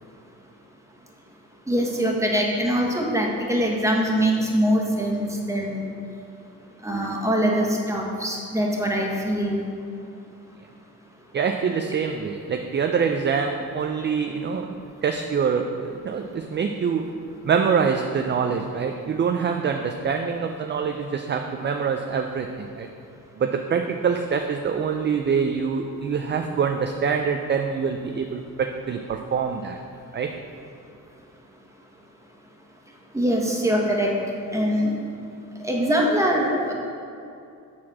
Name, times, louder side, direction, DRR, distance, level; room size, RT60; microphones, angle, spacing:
voice 1, 1.7-5.9 6.8-9.6 33.1-34.1 34.5-34.9 35.6-36.7, equal, 10° right, -1 dB, 1.3 m, -23 dB
voice 2, 11.3-22.9 23.4-29.8 30.1-30.4, right 6 dB, 35° right, 5 dB, 0.4 m, -25 dB
7.5 x 4.2 x 6.0 m, 2.6 s
cardioid pair, 90°, 34 cm